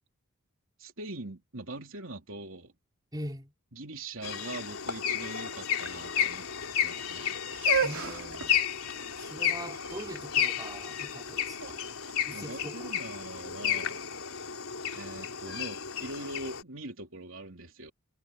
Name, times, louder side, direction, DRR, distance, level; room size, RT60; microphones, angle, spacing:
voice 1, 0.8-2.7 3.7-6.5 6.8-7.4 12.3-14.1 14.9-17.9, right 2 dB, 65° right, 3.6 m, -42 dB
voice 2, 3.1-3.5 7.8-8.6 9.2-11.8 12.3-12.9, equal, 20° right, 4.4 m, -42 dB
sound 1, 4.2-16.6, left 8 dB, 85° left, 3.2 m, -32 dB
sound 2, 7.5-13.4, right 6 dB, 85° right, 2.7 m, -36 dB
head